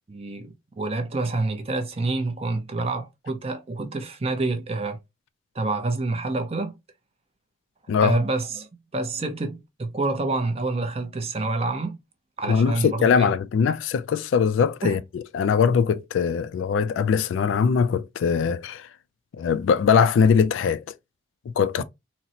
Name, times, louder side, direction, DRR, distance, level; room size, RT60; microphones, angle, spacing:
voice 1, 0.1-5.0 5.6-6.7 8.0-8.7 8.9-12.0 12.4-13.3 14.8-15.0 21.8-21.9, right 2 dB, 30° right, 0.5 m, -27 dB
voice 2, 12.4-18.9 19.4-20.8 21.5-21.8, left 6 dB, 80° left, 0.3 m, -21 dB
4.0 x 2.0 x 2.7 m
head